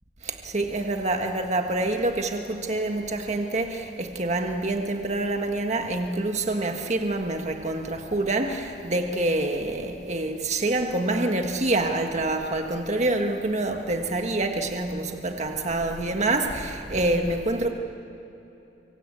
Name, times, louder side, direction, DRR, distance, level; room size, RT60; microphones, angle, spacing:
voice 1, 0.2-17.7, right 2 dB, 40° right, 4 dB, 1.6 m, -26 dB
25.0 x 23.5 x 8.8 m, 2.9 s
head